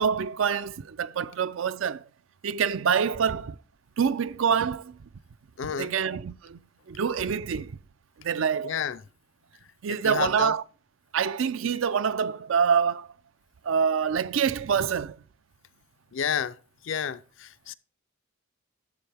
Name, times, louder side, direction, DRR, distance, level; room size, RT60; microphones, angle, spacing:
voice 1, 0.0-2.0 2.4-3.6 4.0-5.0 5.8-6.6 6.9-7.8 8.2-8.7 9.8-10.6 11.1-13.1 13.6-15.2, right 7 dB, 75° right, 0.4 m, -26 dB
voice 2, 5.6-5.9 8.6-9.0 9.9-10.5 16.1-16.6 16.8-17.7, left 7 dB, 70° left, 0.5 m, -30 dB
12.0 x 7.7 x 3.4 m
head